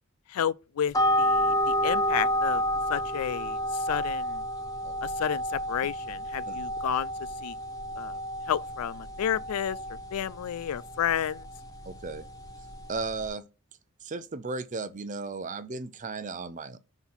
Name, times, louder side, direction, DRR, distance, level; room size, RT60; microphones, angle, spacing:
voice 1, 0.3-2.6 2.9-4.4 5.0-7.1 7.4-7.6 8.0-8.2 8.5-9.8 10.1-11.5, left 9 dB, 85° left, 0.4 m, -31 dB
sound 1, 0.9-13.3, equal, 15° left, 0.8 m, -30 dB
voice 2, 11.9-12.2 12.9-13.4 14.0-16.8, right 4 dB, 35° right, 0.5 m, -35 dB
6.1 x 3.9 x 5.5 m
head